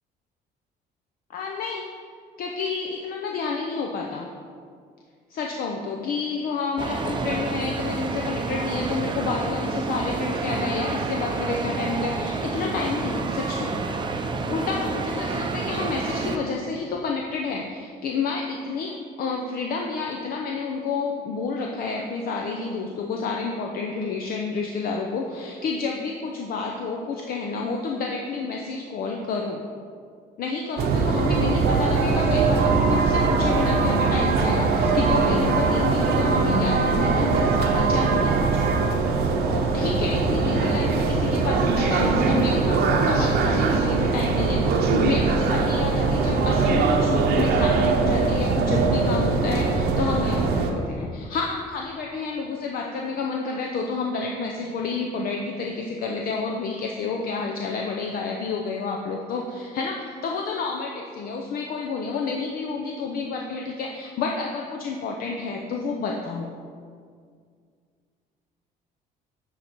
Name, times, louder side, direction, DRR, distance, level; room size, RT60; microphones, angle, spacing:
voice 1, 1.3-1.9 2.4-4.3 5.3-13.8 14.5-29.6 30.4-38.7 39.5-66.5, left 4 dB, 60° left, 1 dB, 0.7 m, -29 dB
sound 1, 6.8-16.4, right 4 dB, 30° right, 0.6 m, -29 dB
sound 2, 30.8-50.7, right 4 dB, 75° right, 0.9 m, -21 dB
9.2 x 4.1 x 4.5 m, 2.1 s
cardioid pair, 110°, 17 cm